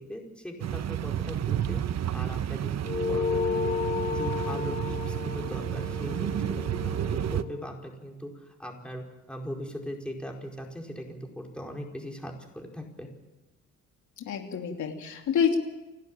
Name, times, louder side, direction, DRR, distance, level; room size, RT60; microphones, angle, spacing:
voice 1, 0.0-1.8 2.1-3.7 4.1-8.3 8.6-13.1, equal, 5° left, 1 dB, 5.0 m, -40 dB
sound 1, 0.6-7.4, right 10 dB, 60° right, 1.1 m, -31 dB
sound 2, 2.8-7.7, left 5 dB, 20° left, 1.6 m, -32 dB
voice 2, 14.2-15.6, left 7 dB, 75° left, 3 dB, 2.9 m, -28 dB
29.5 x 12.0 x 9.1 m, 1.1 s
cardioid pair, 90°, 30 cm